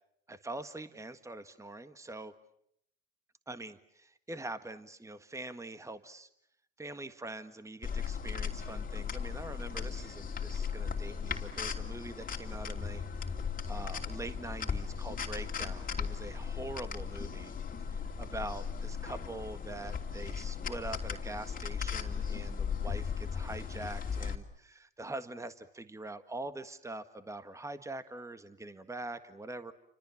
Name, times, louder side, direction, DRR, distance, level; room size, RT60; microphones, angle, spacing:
voice 1, 0.3-2.3 3.5-6.3 6.8-13.3 13.7-29.7, right 2 dB, 10° right, 11 dB, 1.7 m, -44 dB
sound 1, 7.8-24.3, left 6 dB, 30° left, 2.9 m, -37 dB
29.5 x 26.0 x 7.2 m, 0.73 s
supercardioid pair, 85°, 29 cm